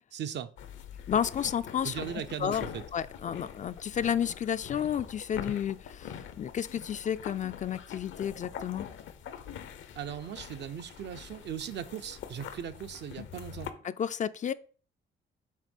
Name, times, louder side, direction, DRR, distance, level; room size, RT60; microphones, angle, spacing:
voice 1, 0.1-0.5 1.8-2.8 9.9-13.7, right 9 dB, 65° right, 0.6 m, -38 dB
sound 1, 0.6-13.7, left 8 dB, 75° left, 0.8 m, -44 dB
voice 2, 1.1-1.9 2.4-2.6 2.9-8.9 13.8-14.5, left 8 dB, 40° left, 0.4 m, -31 dB
6.6 x 3.3 x 5.3 m
cardioid pair, 90°, 20 cm